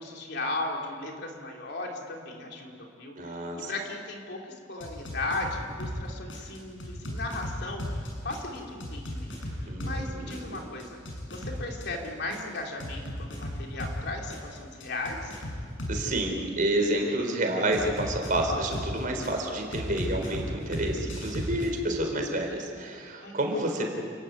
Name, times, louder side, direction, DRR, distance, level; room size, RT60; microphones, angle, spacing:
voice 1, 0.0-2.7 3.0-4.4 4.7-7.8 8.2-11.0 11.3-15.4 23.2-23.6, left 2 dB, 60° left, 0 dB, 3.6 m, -36 dB
voice 2, 3.2-3.7 9.7-10.6 15.9-23.9, right 1 dB, 45° right, 3 dB, 4.1 m, -29 dB
sound 1, 4.8-6.0 6.3-10.0 10.3-14.0 14.3-16.1 17.7-19.3 19.7-21.7, left 1 dB, 80° left, 6.8 m, -35 dB
29.5 x 15.0 x 9.6 m, 2.2 s
head